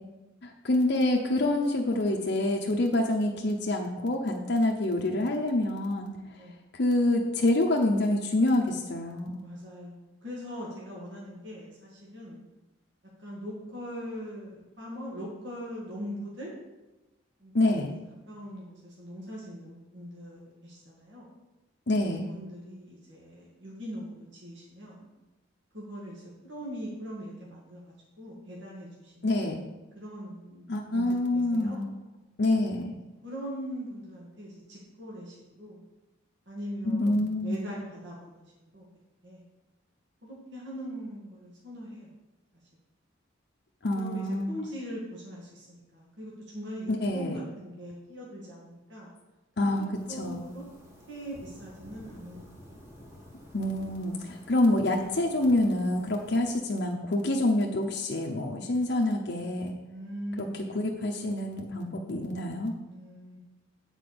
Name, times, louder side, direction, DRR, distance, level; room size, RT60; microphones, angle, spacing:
voice 1, 0.4-6.1 6.7-9.4 17.5-17.9 21.9-22.2 29.2-29.6 30.7-31.9 32.4-33.0 36.8-37.6 43.8-44.5 46.9-47.4 49.6-49.9 50.2-50.4 53.5-59.8 60.4-60.5 60.7-62.7, left 1 dB, 60° left, 0 dB, 0.8 m, -27 dB
voice 2, 9.4-12.5 13.2-16.5 17.4-17.9 18.3-21.3 22.1-25.1 25.7-29.5 29.9-31.8 33.2-35.8 36.5-38.5 38.7-39.4 40.2-42.1 43.9-49.1 49.6-50.6 51.1-52.5 59.9-60.8 62.9-63.4, equal, 60° right, -5 dB, 2.0 m, -41 dB
sound 1, 49.9-56.6, equal, 15° right, 1.6 m, -51 dB
7.8 x 4.5 x 6.7 m, 1.0 s
head